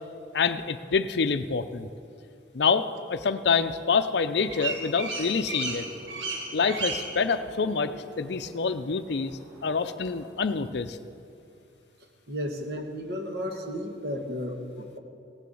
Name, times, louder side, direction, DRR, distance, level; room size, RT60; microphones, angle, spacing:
voice 1, 0.3-1.9 2.5-5.9 6.5-9.3 9.6-11.0, left 5 dB, 60° left, 11 dB, 0.5 m, -26 dB
sound 1, 4.1-10.3, right 3 dB, 85° right, 1.9 m, -37 dB
voice 2, 12.3-15.0, equal, 55° right, 3 dB, 1.4 m, -33 dB
16.5 x 6.9 x 7.7 m, 2.4 s
head